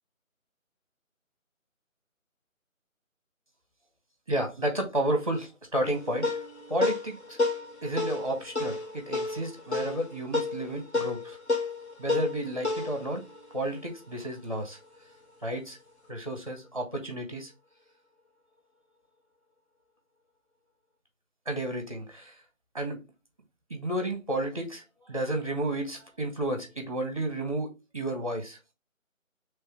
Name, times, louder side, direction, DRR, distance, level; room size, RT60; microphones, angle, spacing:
voice 1, 4.3-6.3 6.7-7.4 7.8-11.4 12.0-13.2 13.5-14.8 15.4-15.8 16.1-17.5 21.5-22.4 22.7-23.0 23.7-28.6, right 1 dB, 25° right, 0.9 m, -32 dB
sound 1, 5.8-14.6, left 3 dB, 55° left, 1.2 m, -32 dB
3.4 x 3.3 x 4.4 m
figure-of-eight pair, 175°, 41 cm